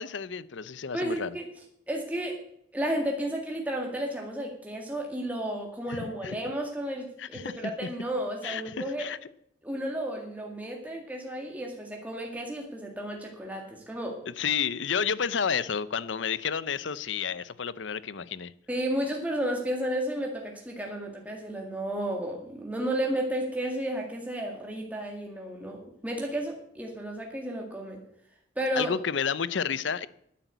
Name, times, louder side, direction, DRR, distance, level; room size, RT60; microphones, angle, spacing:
voice 1, 0.0-1.3 5.9-6.4 7.2-7.5 8.4-9.2 14.4-18.5 28.8-30.1, left 7 dB, 75° left, 17 dB, 0.6 m, -31 dB
voice 2, 0.9-1.5 1.9-2.4 2.7-9.1 9.6-14.2 18.7-28.0 28.6-29.0, right 1 dB, 10° right, 0 dB, 1.9 m, -32 dB
10.5 x 8.3 x 8.1 m, 0.73 s
head